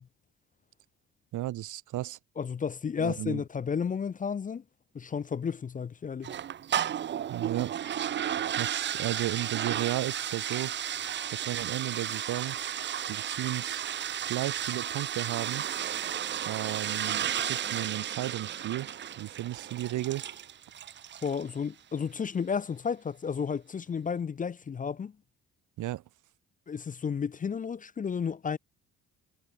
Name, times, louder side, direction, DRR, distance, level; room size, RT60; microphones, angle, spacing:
voice 1, 1.3-2.2 3.0-3.4 7.3-7.7 8.6-10.8 11.3-12.6 13.1-13.8 14.3-15.6 16.4-18.9 19.2-20.3 25.8-26.0, right 15 dB, 85° right, 1.9 m, -34 dB
voice 2, 2.4-4.6 4.9-6.4 21.2-25.1 26.7-28.6, left 6 dB, 25° left, 0.5 m, -32 dB
sound 1, 6.2-21.5, right 10 dB, 40° right, 0.5 m, -33 dB
cardioid pair, 90°, 30 cm